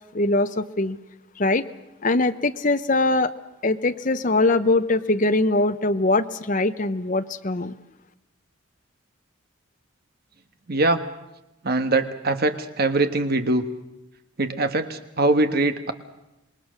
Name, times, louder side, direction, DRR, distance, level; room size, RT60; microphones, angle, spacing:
voice 1, 0.1-1.0 1.4-1.7 2.0-3.3 3.6-7.7, left 2 dB, 40° left, 9 dB, 0.8 m, -22 dB
voice 2, 10.7-11.0 11.6-13.6 14.4-15.9, right 2 dB, 45° right, 8 dB, 1.4 m, -22 dB
27.0 x 20.5 x 6.4 m, 0.93 s
head